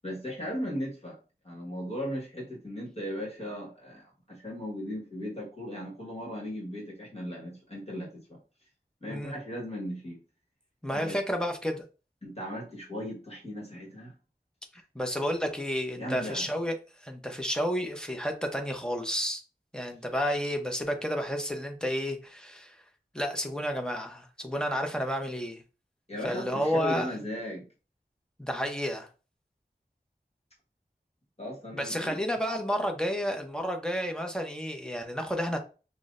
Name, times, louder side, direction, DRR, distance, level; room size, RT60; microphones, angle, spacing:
voice 1, 0.0-1.2 1.4-8.4 9.0-10.2 10.9-11.2 12.2-14.1 16.0-16.5 26.1-27.7 31.4-32.2, equal, 35° left, -3 dB, 1.4 m, -37 dB
voice 2, 10.8-11.8 14.9-19.4 19.7-22.8 23.1-25.6 26.2-27.1 28.4-29.1 31.7-35.6, equal, 5° left, 3 dB, 0.7 m, -31 dB
5.8 x 2.1 x 2.5 m, 0.34 s
wide cardioid pair, 45°, 17 cm